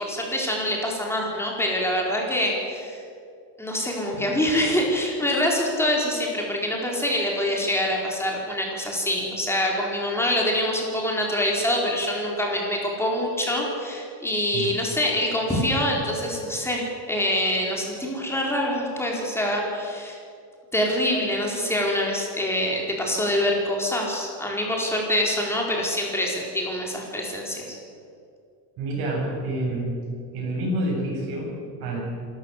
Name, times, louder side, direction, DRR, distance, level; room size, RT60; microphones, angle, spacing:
voice 1, 0.0-3.0 3.6-20.2 20.7-27.8, left 1 dB, 5° left, -1 dB, 4.6 m, -25 dB
voice 2, 28.8-29.9 30.3-32.0, right 1 dB, 55° right, 0 dB, 7.6 m, -28 dB
26.0 x 13.5 x 8.3 m, 2.4 s
cardioid pair, 150°, 43 cm